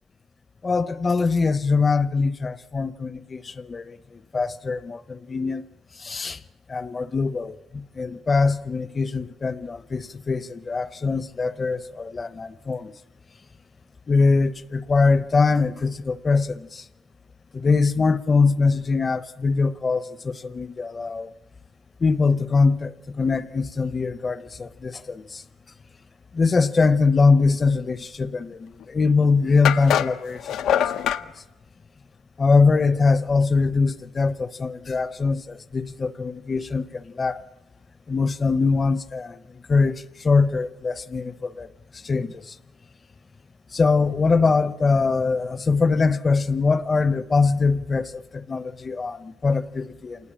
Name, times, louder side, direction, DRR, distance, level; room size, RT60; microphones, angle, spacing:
voice 1, 0.6-4.0 4.3-5.6 6.0-6.4 6.7-7.6 8.0-12.9 14.1-16.8 17.5-21.3 22.0-25.4 26.3-30.4 30.7-31.1 32.4-37.4 38.1-39.4 39.7-41.7 42.0-42.5 43.7-50.2, left 4 dB, 25° left, 0.8 m, -22 dB
sound 1, 28.8-28.9 29.7-31.3, left 9 dB, 80° left, 0.8 m, -23 dB
27.5 x 19.0 x 8.7 m
cardioid pair, 165°, 0 cm